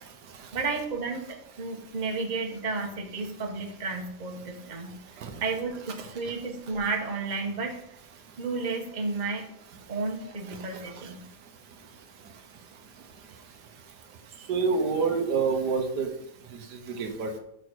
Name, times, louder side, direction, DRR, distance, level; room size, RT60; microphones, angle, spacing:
voice 1, 0.5-4.9 5.4-7.8 8.4-9.4 9.9-11.2, right 4 dB, 30° right, 2 dB, 1.2 m, -32 dB
voice 2, 14.5-16.1 16.9-17.3, right 5 dB, 90° right, 5 dB, 1.6 m, -26 dB
6.8 x 4.9 x 6.2 m, 0.80 s
omnidirectional pair, 1.7 m